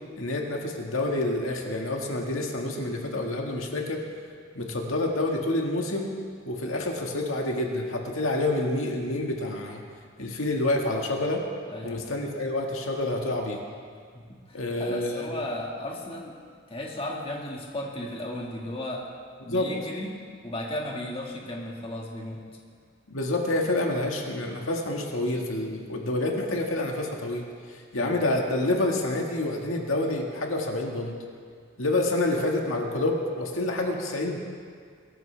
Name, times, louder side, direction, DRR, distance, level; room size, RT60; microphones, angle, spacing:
voice 1, 0.2-4.0 4.5-6.1 6.5-9.8 10.2-11.4 11.8-13.6 14.5-15.4 19.5-19.7 23.1-31.1 31.8-34.4, left 2 dB, 90° left, 0 dB, 1.9 m, -28 dB
voice 2, 11.7-12.1 14.1-16.4 16.7-19.1 19.4-20.2 20.4-22.4 27.9-28.1, left 1 dB, 30° left, -2 dB, 1.9 m, -35 dB
22.5 x 13.5 x 3.5 m, 2.1 s
head